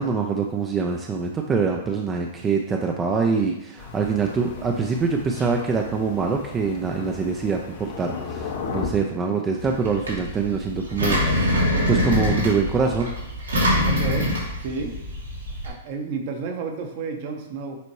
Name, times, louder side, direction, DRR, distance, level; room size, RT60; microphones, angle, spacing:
voice 1, 0.0-11.5 11.9-13.1, right 5 dB, 20° right, 2 dB, 0.6 m, -24 dB
Thunder, 3.8-8.9, left 5 dB, 60° left, 1.1 m, -36 dB
Engine, 9.6-15.7, left 1 dB, 90° right, 2.1 m, -24 dB
voice 2, 13.8-14.3 14.6-14.9 15.6-17.8, right 4 dB, 50° right, 3 dB, 1.1 m, -31 dB
6.8 x 4.3 x 3.2 m, 0.90 s
hypercardioid pair, 120°, 0 cm